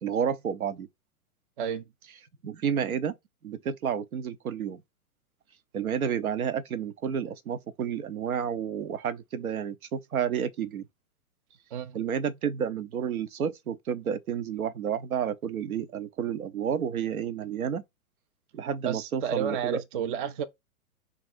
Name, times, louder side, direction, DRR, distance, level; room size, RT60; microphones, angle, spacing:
voice 1, 0.0-0.9 2.4-3.1 3.4-4.8 5.7-10.9 11.9-17.8 18.5-19.8, right 8 dB, 75° right, 0.7 m, -30 dB
voice 2, 1.6-1.9 11.7-12.0 18.8-20.5, right 8 dB, 40° right, 0.4 m, -31 dB
3.0 x 2.5 x 4.3 m
figure-of-eight pair, 110°, 43 cm